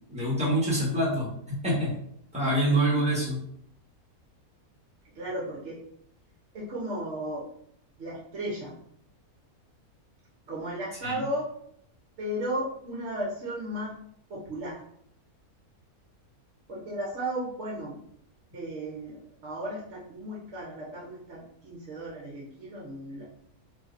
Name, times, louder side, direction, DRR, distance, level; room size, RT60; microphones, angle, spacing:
voice 1, 0.1-1.9 2.3-3.4 11.0-11.2, right 1 dB, 5° right, -7 dB, 1.3 m, -26 dB
voice 2, 2.4-2.7 5.1-5.8 6.5-7.5 8.0-8.7 10.5-11.5 12.2-14.0 14.3-14.8 16.7-18.0 18.5-23.2, right 1 dB, 55° right, -5 dB, 1.0 m, -35 dB
3.5 x 2.7 x 2.5 m, 0.69 s
omnidirectional pair, 1.6 m